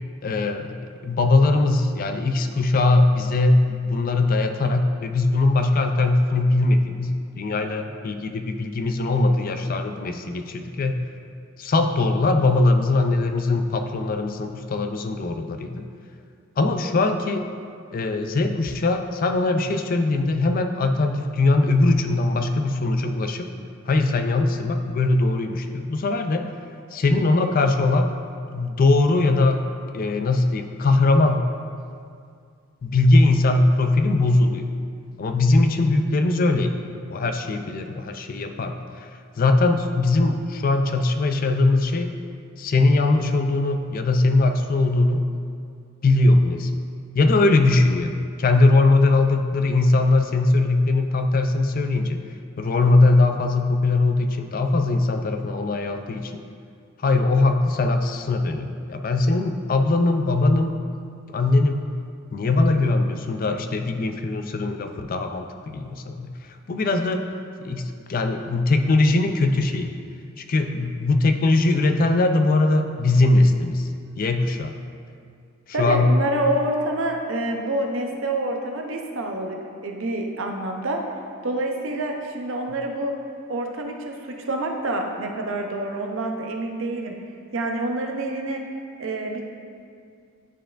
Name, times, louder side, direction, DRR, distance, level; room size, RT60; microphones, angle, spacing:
voice 1, 0.2-0.8 1.0-11.1 11.6-15.9 16.6-17.5 17.9-23.5 23.9-26.5 26.9-28.1 28.5-29.7 29.9-31.5 32.8-34.7 35.2-36.7 37.1-39.1 39.4-42.1 42.6-45.2 46.0-46.7 47.1-52.2 52.6-56.4 57.0-60.7 61.3-61.8 62.3-66.3 66.7-67.2 67.6-69.9 70.4-73.9 74.2-74.7 75.8-76.1, left 2 dB, 40° left, 6 dB, 0.3 m, -20 dB
voice 2, 75.7-81.0 81.4-83.1 83.5-87.2 87.5-88.6 89.0-89.5, right 1 dB, 65° right, 2 dB, 0.6 m, -27 dB
9.9 x 4.5 x 2.5 m, 2.3 s
head